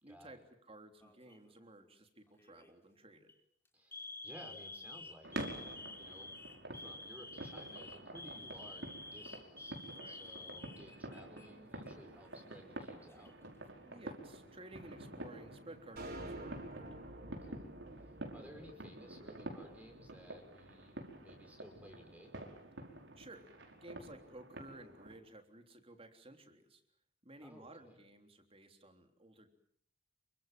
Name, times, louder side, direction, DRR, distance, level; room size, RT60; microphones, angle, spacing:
voice 1, 0.0-3.3 5.9-6.2 9.9-10.2 13.8-16.9 23.2-23.5 23.8-26.8 27.2-29.5, right 1 dB, 30° right, 6 dB, 3.5 m, -55 dB
Alarm, 1.0-1.5 2.4-2.7 3.1-3.3 3.9-11.5 11.8-11.9 12.8-13.5, left 2 dB, 15° left, 3.8 m, -50 dB
voice 2, 3.7-6.3 6.7-9.8 10.1-13.3 17.4-17.9 18.3-22.3 27.4-28.0, equal, 10° right, 3 dB, 5.4 m, -57 dB
sound 1, 5.2-25.2, right 1 dB, 75° right, 5.3 m, -49 dB
sound 2, 16.0-20.4, right 1 dB, 60° right, 6.8 m, -49 dB
28.5 x 25.0 x 7.5 m, 0.66 s
head